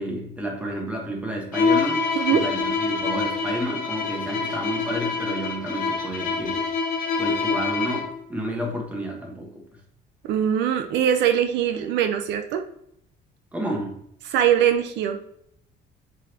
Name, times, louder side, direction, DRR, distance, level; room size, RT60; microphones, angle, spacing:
voice 1, 0.0-2.0 2.3-6.6 7.2-9.6 13.5-13.9, right 1 dB, 5° right, -1 dB, 1.3 m, -30 dB
Bowed string instrument, 1.5-8.2, left 5 dB, 45° left, 1.4 m, -26 dB
voice 2, 10.3-12.6 14.2-15.2, right 9 dB, 70° right, 7 dB, 0.6 m, -22 dB
8.1 x 4.1 x 2.9 m, 0.72 s
cardioid pair, 175°, 19 cm